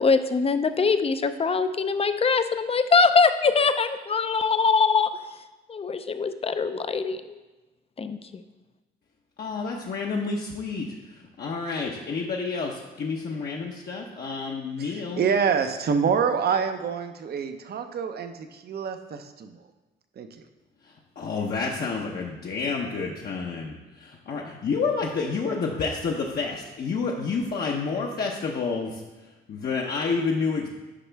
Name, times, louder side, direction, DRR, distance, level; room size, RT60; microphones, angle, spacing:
voice 1, 0.0-5.1 5.7-7.2 8.0-8.4, left 4 dB, 30° left, 10 dB, 0.5 m, -22 dB
voice 2, 9.4-10.9 11.4-15.2 21.2-29.0 29.5-30.7, left 4 dB, 55° left, -2 dB, 0.9 m, -29 dB
voice 3, 14.8-19.6 20.2-20.3, right 6 dB, 55° right, 8 dB, 0.7 m, -26 dB
9.9 x 5.4 x 3.4 m, 1.1 s
cardioid pair, 90°, 20 cm